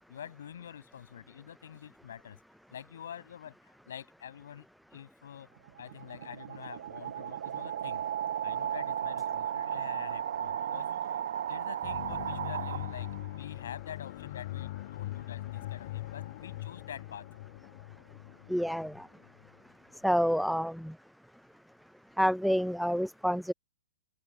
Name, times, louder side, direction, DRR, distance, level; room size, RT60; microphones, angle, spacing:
voice 1, 0.1-2.4 2.7-4.7 4.9-5.5 5.8-8.0 8.4-11.2 11.5-17.3, left 9 dB, 70° left, 6.6 m, -46 dB
sound 1, 5.6-13.4, right 10 dB, 65° right, 1.3 m, -35 dB
sound 2, 11.8-19.6, left 16 dB, 50° left, 4.4 m, -41 dB
voice 2, 18.5-19.0 20.0-20.9 22.2-23.5, equal, ahead, 0.4 m, -28 dB
hypercardioid pair, 135°, 0 cm